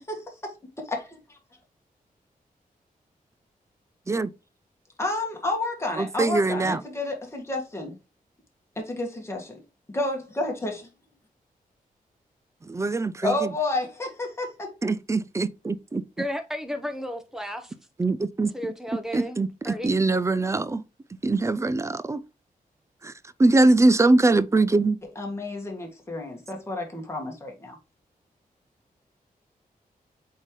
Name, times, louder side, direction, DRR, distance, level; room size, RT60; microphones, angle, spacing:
voice 1, 0.1-0.5 5.0-8.0 8.8-9.6 9.9-10.9 13.2-14.7 25.2-27.8, left 2 dB, 15° left, 1.8 m, -30 dB
voice 2, 6.0-6.8 12.7-13.5 14.8-16.0 18.0-18.5 19.1-20.8 21.2-22.2 23.0-23.1 23.4-25.0, right 2 dB, 20° right, 0.3 m, -22 dB
voice 3, 16.2-17.7 18.5-19.4 19.6-19.9, equal, 5° right, 0.9 m, -33 dB
8.1 x 3.8 x 3.1 m
wide cardioid pair, 170°, 15 cm